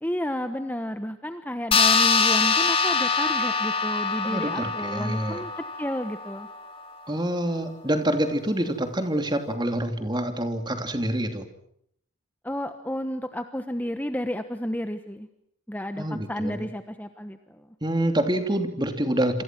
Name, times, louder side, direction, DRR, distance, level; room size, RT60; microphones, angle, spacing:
voice 1, 0.0-5.5 5.8-6.5 12.4-15.3 15.7-17.7, equal, 10° left, 8 dB, 1.1 m, -31 dB
sound 1, 1.7-6.6, left 4 dB, 25° left, 2.4 m, -24 dB
voice 2, 4.2-5.4 7.1-11.5 16.0-16.7 17.8-19.4, right 1 dB, 20° right, 7 dB, 2.8 m, -26 dB
28.0 x 27.5 x 6.1 m, 0.70 s
head